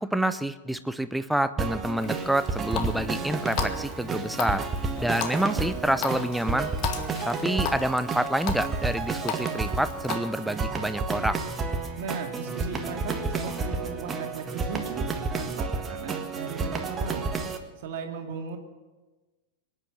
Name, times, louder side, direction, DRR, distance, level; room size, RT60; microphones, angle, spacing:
voice 1, 0.0-4.7 5.0-6.7 7.3-11.4, right 1 dB, ahead, 12 dB, 0.8 m, -28 dB
sound 1, 1.6-17.6, right 4 dB, 20° right, 1.6 m, -31 dB
Water tap faucet, 2.0-10.2, left 8 dB, 40° left, 1.6 m, -37 dB
voice 2, 12.0-15.1 15.3-17.3 17.8-18.6, right 5 dB, 55° right, 3 dB, 2.4 m, -37 dB
23.5 x 10.0 x 6.2 m, 1.2 s
figure-of-eight pair, 90°, 0 cm